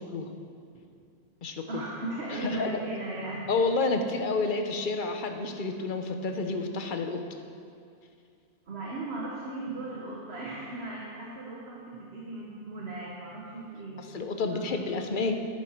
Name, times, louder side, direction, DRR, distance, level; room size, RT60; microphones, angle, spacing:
voice 1, 1.7-3.5 8.7-15.0, right 2 dB, 60° right, -4 dB, 1.5 m, -37 dB
voice 2, 2.4-2.8 3.5-7.2 14.1-15.4, left 3 dB, 45° left, 5 dB, 0.9 m, -29 dB
11.0 x 10.5 x 4.5 m, 2.4 s
omnidirectional pair, 1.2 m